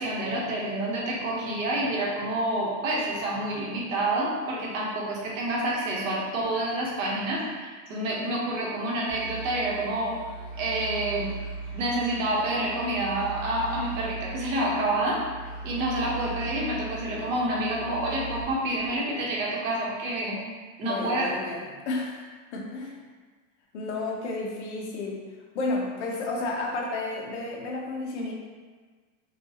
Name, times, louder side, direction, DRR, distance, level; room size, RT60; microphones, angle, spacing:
voice 1, 0.0-10.2 10.6-11.3 11.7-15.2 15.6-20.4 20.8-21.3, right 1 dB, 75° right, -4 dB, 1.3 m, -28 dB
sound 1, 9.1-19.4, right 3 dB, 15° left, 0.3 m, -39 dB
voice 2, 20.8-23.0 23.7-25.2 25.5-28.3, left 2 dB, 55° left, 0 dB, 0.8 m, -32 dB
5.2 x 2.4 x 2.8 m, 1.5 s
supercardioid pair, 175°, 40 cm